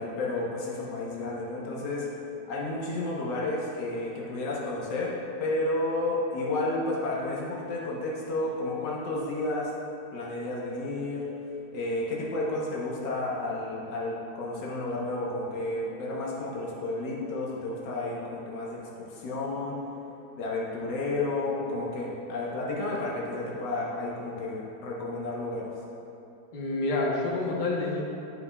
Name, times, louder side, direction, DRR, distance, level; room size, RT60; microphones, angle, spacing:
voice 1, 0.0-2.1 2.5-9.7 10.1-11.2 11.7-19.8 20.4-25.7, left 2 dB, 70° left, -5 dB, 1.7 m, -31 dB
voice 2, 26.5-28.0, left 2 dB, 35° left, -3 dB, 0.9 m, -28 dB
11.5 x 5.7 x 2.4 m, 2.9 s
omnidirectional pair, 2.0 m